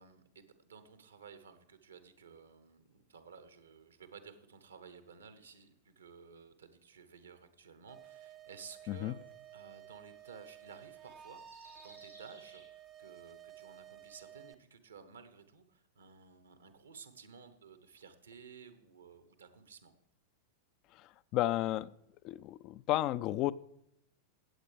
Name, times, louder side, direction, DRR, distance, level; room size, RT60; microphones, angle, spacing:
voice 1, 0.0-9.2 9.5-19.9, right 6 dB, 70° right, 10 dB, 1.0 m, -55 dB
sound 1, 7.9-14.5, right 11 dB, 20° right, 0.5 m, -54 dB
sound 2, 9.2-12.9 13.5-13.6, right 1 dB, 90° right, 4.8 m, -60 dB
voice 2, 21.3-21.9 22.2-23.5, left 15 dB, 40° left, 16 dB, 0.3 m, -32 dB
15.5 x 8.2 x 3.3 m, 0.77 s
figure-of-eight pair, 90°, 0 cm